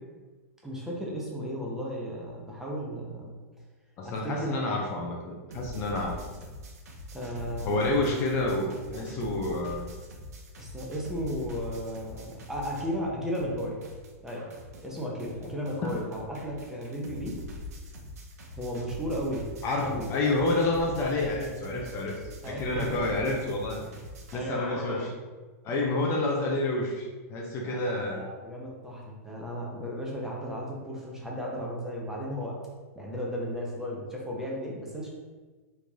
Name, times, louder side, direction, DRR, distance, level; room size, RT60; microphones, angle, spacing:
voice 1, 0.6-3.3 4.0-4.5 7.1-8.1 10.6-13.8 14.2-14.5 14.8-17.4 18.5-19.5 19.8-20.1 22.4-23.1 24.3-25.1 27.7-32.6 32.9-35.1, equal, 5° right, -3 dB, 0.7 m, -35 dB
voice 2, 4.0-6.2 7.6-9.9 19.6-22.2 22.4-23.8 24.3-25.1 25.6-28.3, left 2 dB, 35° left, 0 dB, 0.5 m, -29 dB
sound 1, 5.5-13.1 13.3-24.4, left 1 dB, 80° right, 0.7 m, -43 dB
3.3 x 2.5 x 3.4 m, 1.3 s
hypercardioid pair, 130°, 8 cm